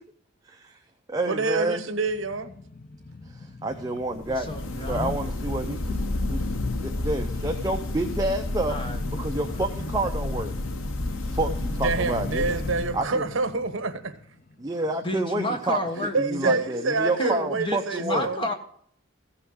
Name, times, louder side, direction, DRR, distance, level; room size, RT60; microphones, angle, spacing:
voice 1, 0.5-0.8 1.1-1.8 3.3-4.5 4.9-6.0 6.2-8.8 9.2-10.5 11.3-12.6 12.9-13.2 14.6-15.8 16.2-18.3, right 2 dB, 20° right, 0.7 m, -29 dB
voice 2, 1.3-2.5 11.8-14.1 16.0-18.5, right 3 dB, 75° right, 1.1 m, -27 dB
sound 1, 1.9-15.1 15.5-15.6, left 2 dB, 45° left, 0.8 m, -42 dB
sound 2, 4.1-13.3, left 2 dB, 85° left, 0.9 m, -30 dB
voice 3, 4.2-5.2 8.7-9.6 15.0-16.6 17.2-18.5, left 1 dB, 25° left, 1.4 m, -31 dB
15.0 x 5.8 x 6.3 m
head